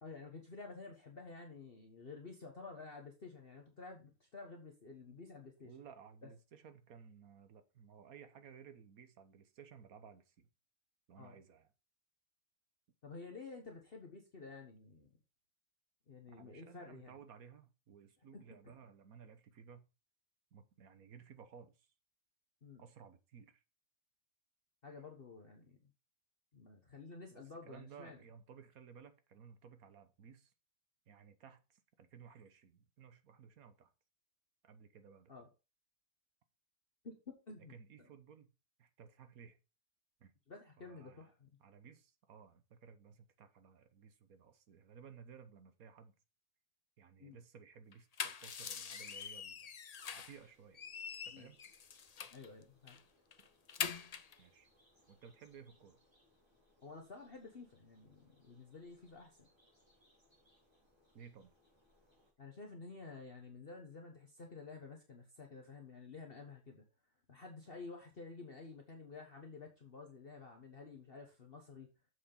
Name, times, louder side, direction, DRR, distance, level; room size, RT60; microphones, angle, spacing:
voice 1, 0.0-5.7 6.2-6.3 11.2-11.3 13.0-15.1 16.1-17.2 18.3-18.4 22.6-22.8 24.8-25.9 26.5-28.2 35.3-35.5 37.0-37.8 40.5-41.5 47.2-47.4 51.3-51.5 52.3-53.0 56.8-59.5 62.4-66.8 67.3-71.9, left 4 dB, 40° left, 1.5 m, -51 dB
voice 2, 5.6-10.5 11.1-11.7 16.3-19.9 20.5-21.9 22.8-23.6 27.7-30.5 31.1-33.9 34.6-35.3 37.7-38.5 38.8-39.6 40.2-40.3 40.8-41.3 41.6-46.1 47.0-49.7 50.1-50.8 51.2-51.6 53.4-53.5 54.4-54.7 55.1-56.0 61.1-61.5, right 7 dB, 70° right, 1.6 m, -57 dB
sound 1, 47.9-50.4 50.7-52.5 52.9-53.0 53.3-54.4, left 6 dB, 90° left, 0.3 m, -43 dB
sound 2, 49.9-62.3, left 1 dB, 15° right, 4.2 m, -72 dB
7.4 x 6.3 x 5.5 m
omnidirectional pair, 1.6 m